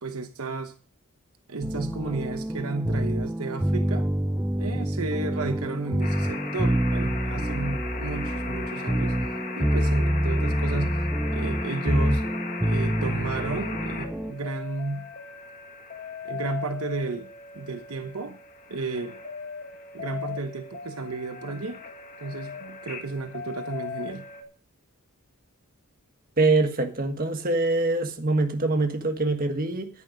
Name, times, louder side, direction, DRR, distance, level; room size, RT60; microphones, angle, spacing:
voice 1, 0.0-0.7 1.5-4.1 4.6-9.2 9.6-10.9 11.3-12.2 12.7-15.1 16.2-17.3 17.5-18.4 18.7-19.2 19.9-21.8 22.2-24.2, right 3 dB, 75° right, 1.0 m, -33 dB
sound 1, 1.6-14.3, right 1 dB, 10° right, 0.5 m, -27 dB
sound 2, 6.0-24.4, left 5 dB, 35° left, 1.4 m, -38 dB
voice 2, 26.4-29.9, right 2 dB, 40° right, 1.5 m, -24 dB
10.0 x 9.6 x 5.1 m
head